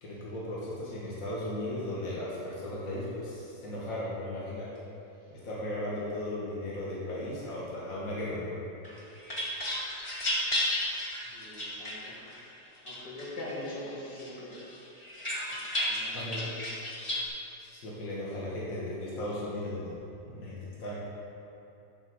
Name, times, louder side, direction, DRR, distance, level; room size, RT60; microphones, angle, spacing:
voice 1, 0.0-4.7 5.3-8.5 16.1-16.5 17.6-19.9 20.3-20.9, left 1 dB, 50° left, -7 dB, 1.9 m, -36 dB
sound 1, 8.8-12.4 12.9-13.8 14.2-17.3, left 1 dB, 20° left, 1.1 m, -33 dB
voice 2, 11.3-12.2 12.8-14.5 15.3-16.1, left 1 dB, 70° left, -6 dB, 2.4 m, -42 dB
9.9 x 4.4 x 6.3 m, 2.8 s
omnidirectional pair, 2.0 m